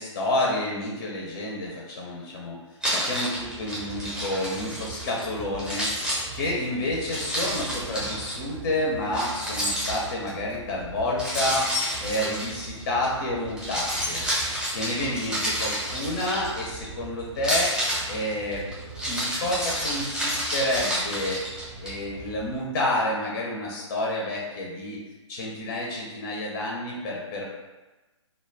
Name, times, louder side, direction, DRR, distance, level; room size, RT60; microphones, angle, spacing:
voice 1, 0.0-2.6 2.9-14.2 14.7-17.7 18.1-18.6 19.1-21.4 21.8-25.0 25.3-27.4, left 1 dB, 35° left, -3 dB, 0.5 m, -29 dB
Keys jangling, 2.8-5.2 5.6-8.4 9.1-10.3 11.2-13.1 13.5-16.9 17.3-21.9, equal, 5° right, 0.7 m, -29 dB
sound 1, 3.4-22.6, right 4 dB, 50° right, 0.5 m, -42 dB
2.2 x 2.1 x 3.1 m, 1.1 s
figure-of-eight pair, 130°, 16 cm